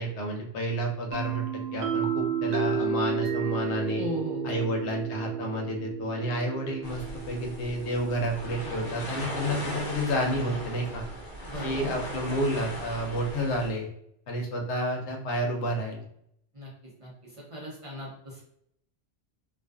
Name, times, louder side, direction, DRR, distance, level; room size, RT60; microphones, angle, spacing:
voice 1, 0.0-4.1 4.4-11.0 11.6-13.9 14.3-16.1, equal, 90° left, 2 dB, 0.9 m, -30 dB
sound 1, 1.1-8.8, right 6 dB, 75° right, 0.9 m, -32 dB
voice 2, 4.0-4.7 11.5-11.9 16.5-16.7 17.0-18.4, equal, 40° right, -5 dB, 0.5 m, -37 dB
sound 2, 6.8-13.7, equal, 55° left, 0.7 m, -38 dB
2.4 x 2.3 x 2.3 m, 0.73 s
omnidirectional pair, 1.1 m